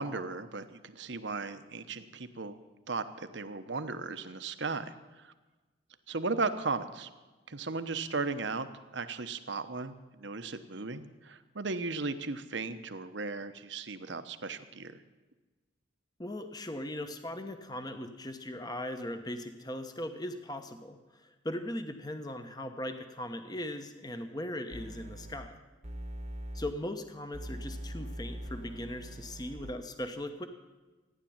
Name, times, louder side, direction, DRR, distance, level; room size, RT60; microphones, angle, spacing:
voice 1, 0.0-2.6 2.9-4.9 5.2-5.3 6.1-7.1 7.5-8.7 8.9-14.9, right 3 dB, 65° right, 10 dB, 1.0 m, -36 dB
voice 2, 16.2-25.6 26.5-30.5, left 1 dB, 20° left, 7 dB, 1.0 m, -39 dB
sound 1, 24.7-25.4 25.8-26.7 27.3-29.7, equal, 35° right, 1.2 m, -42 dB
15.0 x 10.5 x 8.7 m, 1.2 s
head